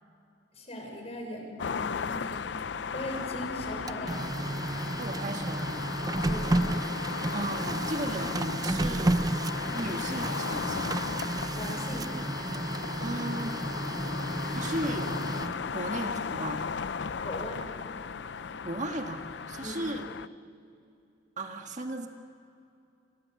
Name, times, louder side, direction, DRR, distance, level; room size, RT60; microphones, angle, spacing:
voice 1, 0.5-4.2 6.2-6.8 11.5-12.1 17.2-17.7 19.6-19.8, left 1 dB, 35° left, 1 dB, 6.2 m, -39 dB
sound 1, 1.6-20.3, left 6 dB, 65° left, 0.5 m, -36 dB
Printer, 3.7-15.8, right 2 dB, 20° right, 0.5 m, -32 dB
voice 2, 5.0-5.8 7.3-9.3 9.7-10.9 13.0-13.6 14.5-15.3 15.7-16.7 18.6-20.0 21.4-22.1, right 1 dB, 40° right, 4 dB, 1.7 m, -35 dB
29.5 x 23.0 x 7.0 m, 2.7 s
head